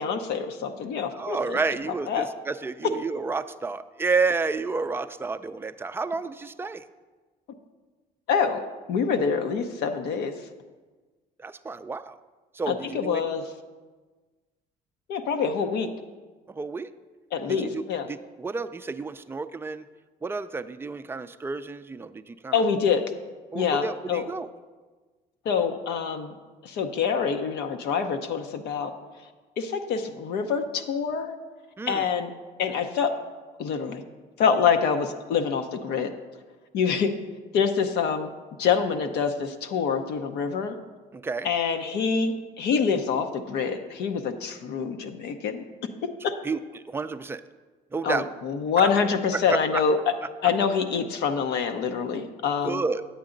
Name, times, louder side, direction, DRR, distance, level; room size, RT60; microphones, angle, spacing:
voice 1, 0.0-1.6 2.1-2.3 8.3-8.6 8.9-10.3 12.7-13.4 15.1-15.9 17.3-18.1 22.5-23.0 23.5-24.2 25.4-26.3 26.6-28.9 29.6-31.3 31.9-32.3 32.6-33.1 33.6-34.0 34.4-36.1 36.7-37.1 37.5-38.3 38.6-40.7 41.4-45.6 46.2-46.3 48.0-50.0 50.4-52.8, left 6 dB, 75° left, 6 dB, 0.7 m, -26 dB
voice 2, 1.1-6.8 11.4-12.2 12.5-13.2 16.5-16.9 17.5-17.8 18.1-19.9 20.2-22.6 23.5-24.5 31.8-32.1 41.1-41.5 46.4-47.4 47.9-48.3 48.8-49.0 49.3-49.8 52.6-53.0, right 4 dB, 15° right, 10 dB, 0.3 m, -30 dB
9.6 x 8.3 x 3.8 m, 1.3 s
cardioid pair, 110°, 17 cm